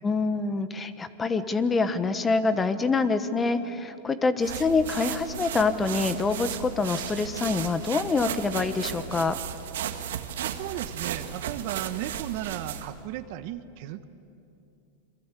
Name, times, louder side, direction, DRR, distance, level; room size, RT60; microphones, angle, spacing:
voice 1, 0.0-9.4, left 4 dB, 15° left, 11 dB, 1.3 m, -26 dB
sound 1, 4.4-13.0, right 9 dB, 85° right, 1.8 m, -35 dB
voice 2, 10.4-14.0, right 13 dB, 55° right, 11 dB, 1.2 m, -35 dB
28.0 x 23.0 x 8.4 m, 2.7 s
supercardioid pair, 130°, 0 cm